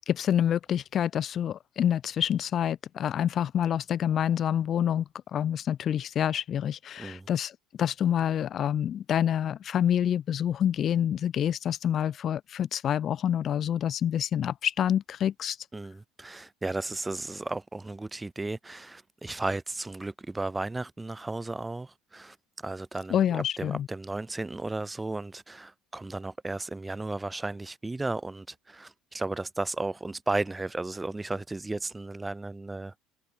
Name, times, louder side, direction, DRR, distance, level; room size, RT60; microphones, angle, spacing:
voice 1, 0.1-15.6 23.1-23.9, left 9 dB, 50° left, 1.0 m, -27 dB
voice 2, 15.7-22.4 22.6-33.0, right 2 dB, 15° right, 2.8 m, -34 dB
hypercardioid pair, 75°, 0 cm